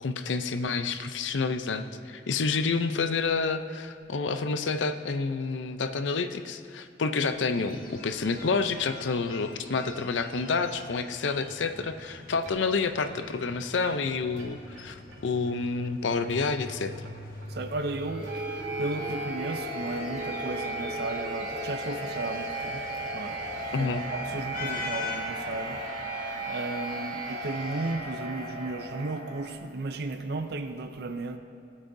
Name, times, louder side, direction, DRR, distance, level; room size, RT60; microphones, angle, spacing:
voice 1, 0.0-16.9 23.7-24.0, left 4 dB, 85° left, 10 dB, 0.6 m, -29 dB
sound 1, 7.2-25.9, left 4 dB, 50° left, 1.1 m, -45 dB
sound 2, 11.4-29.5, right 1 dB, 90° right, 2.7 m, -37 dB
voice 2, 17.5-18.5 18.8-22.9 23.1-23.4 23.8-25.8 26.5-31.4, right 2 dB, 60° right, 7 dB, 0.5 m, -34 dB
20.5 x 8.7 x 2.7 m, 2.3 s
head